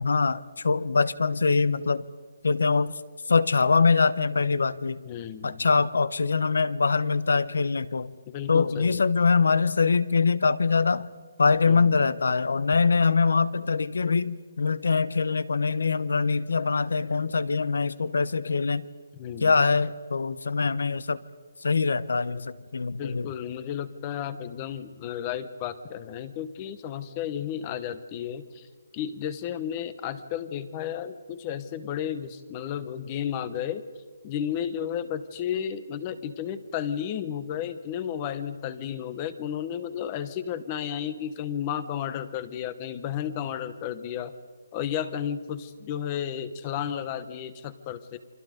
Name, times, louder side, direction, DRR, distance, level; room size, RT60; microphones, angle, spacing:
voice 1, 0.0-2.1 2.4-2.9 3.3-5.0 5.4-8.1 8.5-11.1 11.4-18.8 19.4-21.2 21.6-23.3, left 4 dB, 80° left, 18 dB, 1.0 m, -23 dB
voice 2, 5.0-5.7 8.3-9.0 11.7-12.0 19.1-19.5 23.0-28.7 28.9-33.8 34.2-44.3 44.7-48.2, left 9 dB, 20° left, 14 dB, 0.9 m, -33 dB
29.0 x 24.5 x 5.1 m, 1.4 s
hypercardioid pair, 175°, 0 cm